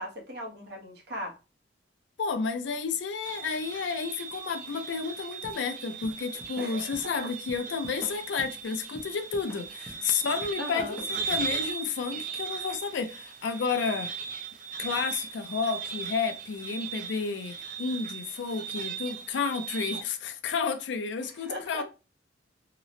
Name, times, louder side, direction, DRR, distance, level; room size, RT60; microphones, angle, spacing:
voice 1, 0.0-1.3 6.6-7.3 10.6-11.0 21.2-21.8, equal, 60° right, 0.7 m, -38 dB
voice 2, 2.2-14.1 14.8-21.8, left 5 dB, 70° left, 0.4 m, -31 dB
sound 1, 3.2-20.0, right 6 dB, 45° right, 0.3 m, -38 dB
sound 2, 5.4-11.3, left 1 dB, 10° left, 0.5 m, -47 dB
2.8 x 2.0 x 2.5 m
head